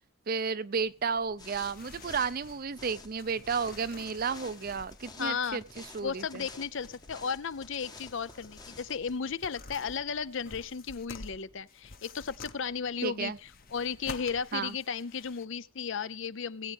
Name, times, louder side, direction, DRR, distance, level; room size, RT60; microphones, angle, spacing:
voice 1, 0.3-6.4 13.0-13.4 14.5-14.8, right 5 dB, 45° right, 0.5 m, -33 dB
sound 1, 0.8-15.5, left 3 dB, 40° left, 1.0 m, -51 dB
sound 2, 1.4-9.2, left 3 dB, 20° left, 0.9 m, -51 dB
voice 2, 5.2-5.6 6.0-13.3 13.7-16.7, left 6 dB, 55° left, 0.5 m, -34 dB
19.5 x 8.7 x 3.5 m
head